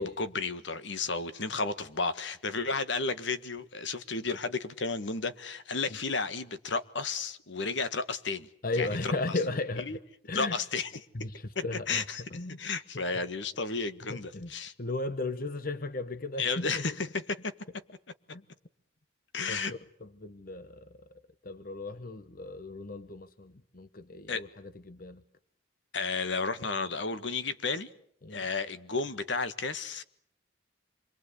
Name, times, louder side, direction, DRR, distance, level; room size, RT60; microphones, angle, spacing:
voice 1, 0.0-8.5 8.8-9.1 9.9-10.0 10.3-10.9 11.5-12.2 12.6-14.7 16.4-17.5 19.3-19.7 24.3-24.4 25.9-27.9 28.3-30.0, left 4 dB, 70° left, 1.6 m, -32 dB
voice 2, 8.6-10.0 10.3-10.6 11.1-12.0 12.3-12.6 14.1-14.5 14.8-16.9 18.3-18.4 19.5-20.9 21.4-25.2 28.2-28.5, left 2 dB, 45° left, 1.0 m, -36 dB
27.0 x 22.5 x 8.3 m
head